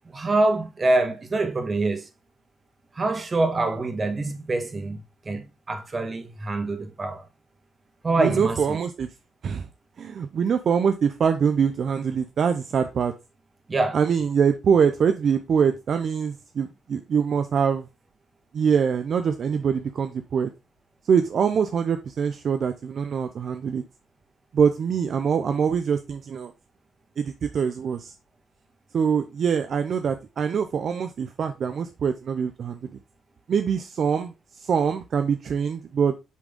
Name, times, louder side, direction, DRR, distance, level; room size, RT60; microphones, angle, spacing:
voice 1, 0.1-2.1 2.9-7.3 8.0-8.8 13.7-14.0, right 2 dB, 30° right, 1.5 m, -25 dB
voice 2, 8.2-9.1 9.4-9.7 10.0-13.1 13.9-17.9 18.5-20.5 21.0-23.8 24.5-26.5 27.2-28.1 28.9-32.9 33.5-36.2, right 7 dB, 55° right, 0.6 m, -24 dB
8.4 x 3.7 x 3.6 m
cardioid pair, 95°, 0 cm